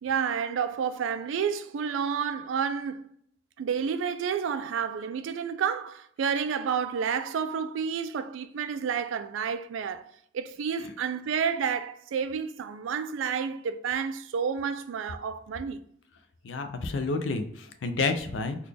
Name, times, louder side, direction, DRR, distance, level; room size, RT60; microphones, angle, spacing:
voice 1, 0.0-3.1 3.6-10.0 10.3-15.8, right 7 dB, 80° right, 0.3 m, -30 dB
voice 2, 16.4-18.6, left 3 dB, 70° left, 0.4 m, -30 dB
3.9 x 2.3 x 3.3 m
head